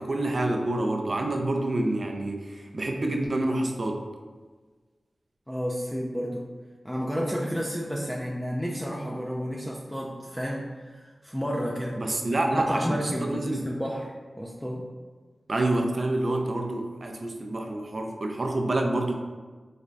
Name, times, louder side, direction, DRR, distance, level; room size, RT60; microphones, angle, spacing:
voice 1, 0.0-4.1 12.0-13.6 15.5-19.1, right 2 dB, 55° right, 3 dB, 0.4 m, -27 dB
voice 2, 5.5-6.5 6.8-12.0 12.5-14.9, equal, 5° left, -4 dB, 0.4 m, -31 dB
3.2 x 2.2 x 3.8 m, 1.4 s
wide cardioid pair, 70°, 0 cm